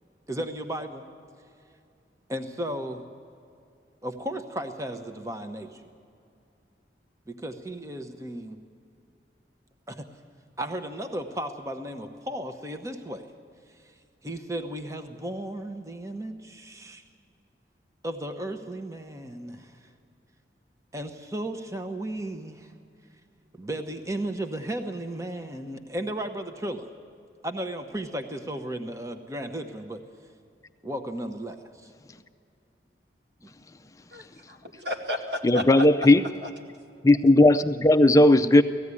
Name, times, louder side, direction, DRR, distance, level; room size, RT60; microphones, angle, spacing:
voice 1, 0.3-1.0 2.3-3.0 4.0-5.9 7.3-8.6 9.9-10.1 10.6-13.3 14.2-17.0 18.0-19.8 20.9-22.7 23.6-26.9 27.4-30.0 30.8-31.9 33.4-33.5, right 1 dB, 15° right, 7 dB, 0.9 m, -34 dB
voice 2, 34.1-36.1 36.4-36.5, left 1 dB, 75° right, 2 dB, 2.3 m, -33 dB
voice 3, 35.4-36.2 37.0-38.6, left 1 dB, 20° left, 8 dB, 0.4 m, -17 dB
18.0 x 15.0 x 9.7 m, 2.5 s
head